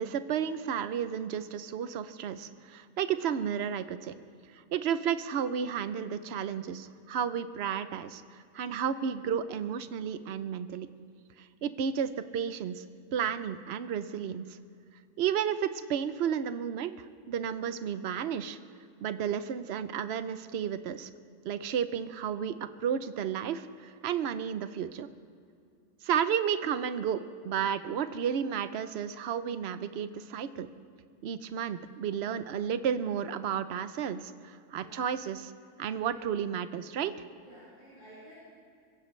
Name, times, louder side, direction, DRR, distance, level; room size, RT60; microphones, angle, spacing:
voice 1, 0.0-4.1 4.5-8.2 8.5-10.9 11.4-12.8 13.1-14.5 15.2-16.9 17.3-18.6 19.0-21.1 21.4-25.1 26.0-30.7 31.2-35.5 35.8-37.1, right 8 dB, 55° right, 12 dB, 0.7 m, -32 dB
voice 2, 34.7-35.0 36.0-36.3 37.4-38.3, equal, 30° left, -11 dB, 5.4 m, -53 dB
23.5 x 16.0 x 3.2 m, 2.4 s
omnidirectional pair, 1.6 m